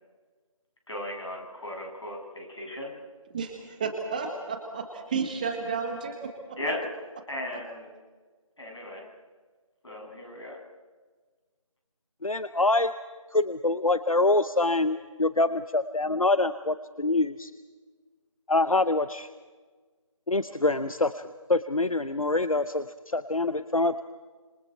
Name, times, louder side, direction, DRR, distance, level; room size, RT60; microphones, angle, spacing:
voice 1, 0.9-2.9 6.6-6.8 7.3-7.9 8.6-9.1 9.8-10.6, left 1 dB, 55° left, 0 dB, 7.8 m, -36 dB
voice 2, 3.3-6.6, right 5 dB, 15° right, 5 dB, 1.3 m, -32 dB
voice 3, 12.2-12.9 13.3-17.5 18.5-19.3 20.3-24.0, left 2 dB, 80° left, 13 dB, 0.9 m, -25 dB
27.5 x 27.0 x 4.6 m, 1.4 s
figure-of-eight pair, 160°, 17 cm